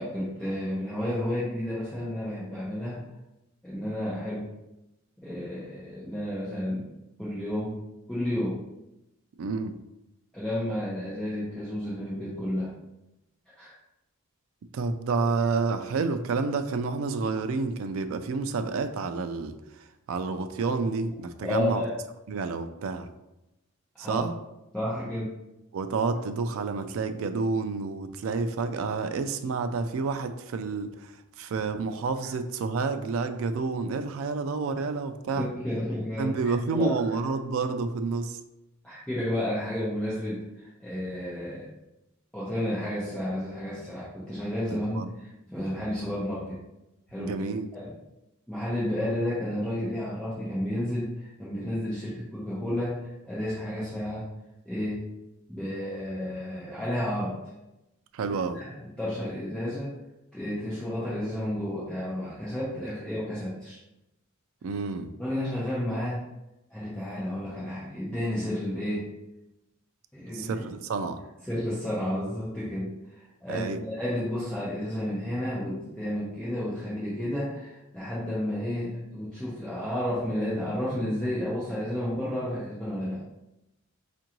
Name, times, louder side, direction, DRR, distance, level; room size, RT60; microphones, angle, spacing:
voice 1, 0.0-3.1 3.6-4.5 5.2-6.9 7.2-7.8 8.1-8.6 10.3-12.8 13.5-13.7 21.4-21.9 23.9-24.2 24.7-25.3 35.4-36.9 38.8-41.7 42.3-46.6 47.1-47.3 47.7-47.9 48.5-54.3 54.6-55.0 55.5-57.4 58.5-59.9 60.3-63.8 65.2-66.2 66.7-69.1 70.1-70.5 71.5-72.9 73.4-83.2, left 1 dB, 5° left, -10 dB, 0.7 m, -31 dB
voice 2, 9.4-9.7 14.7-21.8 22.3-23.1 24.0-24.4 25.7-35.5 36.2-38.4 44.9-45.1 47.2-47.7 58.1-58.6 64.6-65.1 70.3-71.2 73.5-73.8, right 4 dB, 70° right, 9 dB, 0.3 m, -29 dB
4.4 x 2.5 x 2.9 m, 0.92 s
head